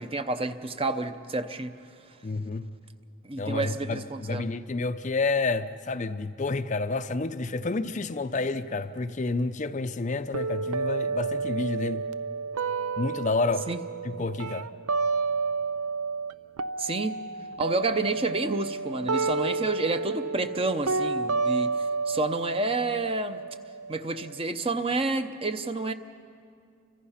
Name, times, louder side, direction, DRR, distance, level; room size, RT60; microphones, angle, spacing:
voice 1, 0.0-1.7 3.2-4.5 13.7-13.8 16.8-17.2 17.6-21.7 22.1-23.4 23.9-25.9, right 3 dB, 25° right, 0.7 m, -29 dB
voice 2, 2.2-2.7 3.4-12.0 13.0-13.7 14.0-14.7, left 3 dB, 35° left, 0.5 m, -29 dB
sound 1, 10.3-16.3 16.6-24.4, right 4 dB, 90° right, 0.6 m, -30 dB
29.5 x 25.0 x 5.7 m
head